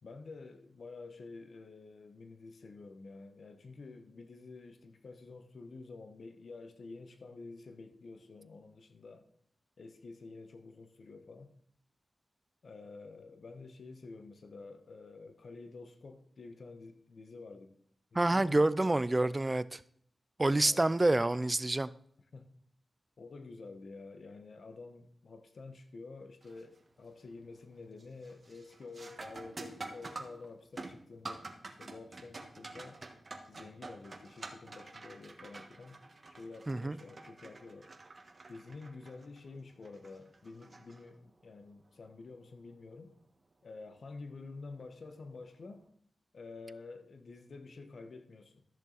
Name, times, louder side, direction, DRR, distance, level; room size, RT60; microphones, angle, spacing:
voice 1, 0.0-9.3 9.8-11.5 12.6-17.7 18.1-18.7 20.6-20.9 22.3-22.5 23.2-33.0 33.5-36.0 36.3-37.9 38.5-43.1 43.6-45.9 46.3-48.7, left 3 dB, 70° left, 1.1 m, -49 dB
voice 2, 18.1-19.8 20.4-21.9 36.7-37.0, right 2 dB, 25° right, 0.4 m, -28 dB
sound 1, 26.4-26.8 27.2-27.6 28.0-41.5 44.0-44.1 44.9-45.2, right 3 dB, 50° right, 1.4 m, -48 dB
13.5 x 6.8 x 4.0 m
cardioid pair, 60°, 0 cm